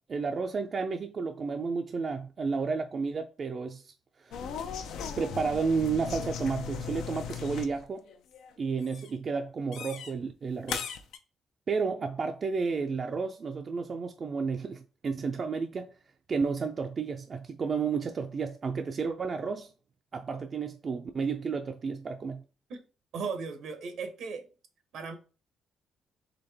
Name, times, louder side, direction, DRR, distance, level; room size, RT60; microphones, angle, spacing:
voice 1, 0.1-3.9 4.2-4.4 5.2-8.1 8.6-10.9 11.7-15.9 16.3-19.7 20.1-22.4, right 5 dB, 45° right, 0.4 m, -32 dB
sound 1, 4.3-7.8 8.1-8.5 8.8-9.1 9.7-10.1 10.7-11.2, left 7 dB, 85° left, 0.5 m, -38 dB
voice 2, 23.1-24.5 24.9-25.2, right 5 dB, 75° right, 1.0 m, -36 dB
4.0 x 3.4 x 3.4 m
cardioid pair, 90°, 0 cm